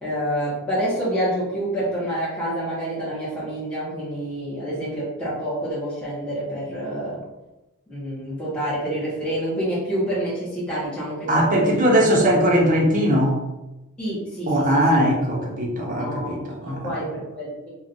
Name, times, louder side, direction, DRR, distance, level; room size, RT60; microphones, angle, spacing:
voice 1, 0.0-7.2 7.9-11.9 14.0-15.0 16.0-17.7, right 1 dB, 5° left, -11 dB, 0.8 m, -28 dB
voice 2, 11.3-13.4 14.5-16.9, equal, 35° right, -1 dB, 0.6 m, -20 dB
2.4 x 2.2 x 3.8 m, 1.0 s
head